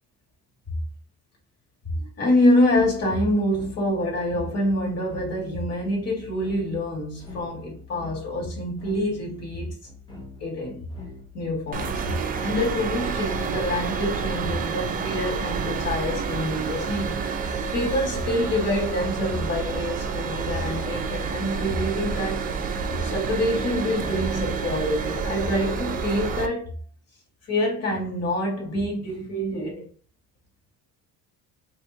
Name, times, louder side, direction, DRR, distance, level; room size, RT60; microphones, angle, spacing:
voice 1, 1.9-9.8 10.4-10.8 11.3-22.5 23.0-26.8 27.5-29.9, left 1 dB, 45° left, 1.8 m, -26 dB
sound 1, 2.8-12.2, left 3 dB, 15° left, 0.9 m, -44 dB
sound 2, 11.7-26.5, right 5 dB, 25° right, 0.4 m, -29 dB
3.5 x 2.8 x 3.8 m
cardioid pair, 155°, 34 cm